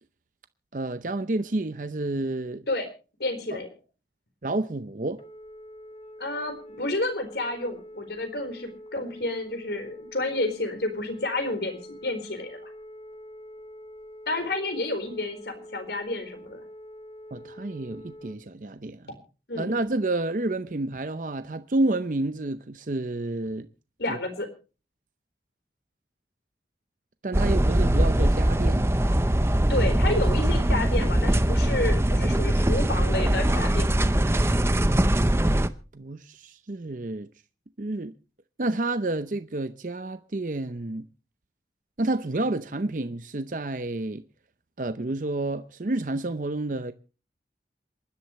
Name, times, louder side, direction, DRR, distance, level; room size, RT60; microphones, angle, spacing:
voice 1, 0.7-2.7 4.4-5.2 17.3-19.1 19.6-23.7 24.1-24.2 27.2-28.9 35.9-37.3 37.8-38.1 38.6-41.1 42.0-44.2 44.8-46.9, right 2 dB, 50° right, 0.7 m, -29 dB
voice 2, 3.2-3.7 6.2-12.6 14.3-16.6 19.5-19.8 24.0-24.5 29.7-34.1, left 2 dB, 70° left, 4.3 m, -30 dB
Telephone, 5.1-18.4, equal, 30° left, 1.7 m, -45 dB
sound 1, 27.3-35.7, right 1 dB, 15° right, 0.7 m, -22 dB
27.0 x 11.5 x 3.1 m
head